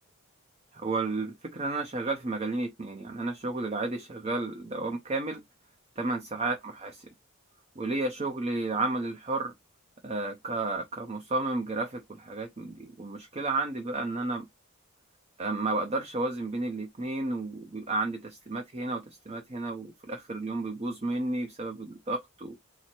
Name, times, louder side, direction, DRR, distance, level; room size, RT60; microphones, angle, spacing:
voice 1, 0.7-5.4 6.0-7.1 7.8-9.5 10.0-14.5 15.4-22.5, right 2 dB, 30° right, 0.6 m, -32 dB
4.3 x 2.0 x 4.3 m
head